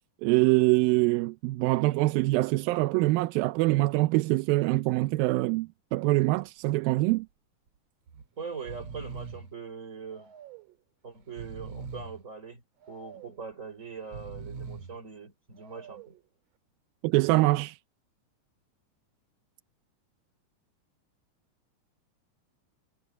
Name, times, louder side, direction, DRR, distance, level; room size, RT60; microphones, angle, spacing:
voice 1, 0.2-7.3 17.0-17.8, right 20 dB, 90° right, 2.4 m, -24 dB
Breathing, 6.4-6.8 7.1-7.2 8.1-8.3 8.5-9.5 10.1-10.7 11.2-12.2 12.8-13.4 14.0-15.0 15.6-16.2, right 5 dB, 50° right, 3.1 m, -43 dB
voice 2, 8.4-10.3 11.0-12.6 12.9-16.1, right 5 dB, 20° right, 4.3 m, -42 dB
omnidirectional pair, 4.0 m